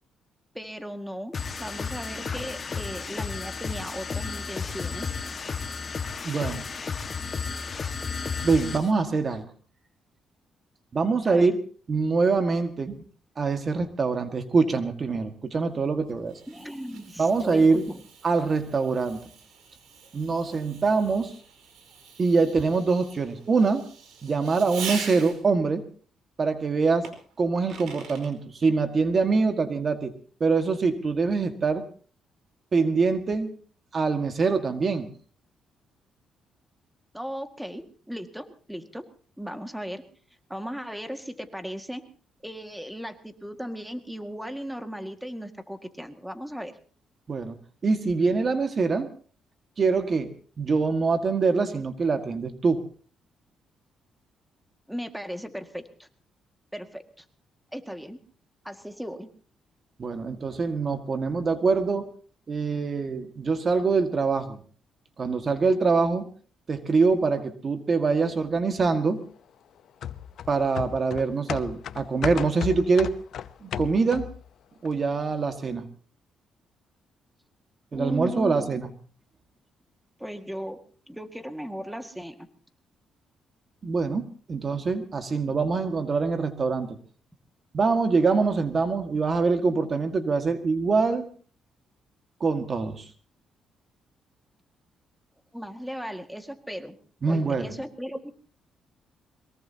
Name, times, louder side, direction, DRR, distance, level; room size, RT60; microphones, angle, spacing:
voice 1, 0.5-5.2 11.2-11.5 16.5-18.0 37.1-39.0 39.4-40.0 40.5-42.0 42.4-46.7 54.9-56.1 56.7-57.2 57.7-58.2 58.6-59.3 77.9-78.7 80.2-80.8 81.1-82.5 95.5-97.0 97.3-98.3, equal, 5° right, 7 dB, 1.9 m, -36 dB
sound 1, 1.3-8.9, left 5 dB, 40° left, 1.6 m, -33 dB
voice 2, 6.2-6.6 8.4-9.5 10.9-11.6 11.9-13.0 13.4-16.4 17.2-17.9 18.2-19.2 20.1-21.4 22.2-23.9 24.2-25.8 26.4-27.1 27.4-30.1 30.4-31.9 32.7-33.5 33.9-35.1 47.3-47.6 47.8-49.1 49.8-50.3 50.6-52.9 60.0-62.1 62.5-64.6 65.2-66.3 66.7-69.2 70.5-73.2 73.6-74.3 74.8-75.9 77.9-78.9 83.8-87.0 87.7-91.3 92.4-93.1 97.2-97.8, right 4 dB, 40° right, 8 dB, 1.8 m, -24 dB
Fireworks, 15.7-25.6 27.0-28.3, right 6 dB, 80° right, 4.6 m, -42 dB
sound 2, 70.0-74.5 74.8-74.9, left 10 dB, 70° left, 0.8 m, -35 dB
22.5 x 22.0 x 2.9 m, 0.41 s
cardioid pair, 100°, 0 cm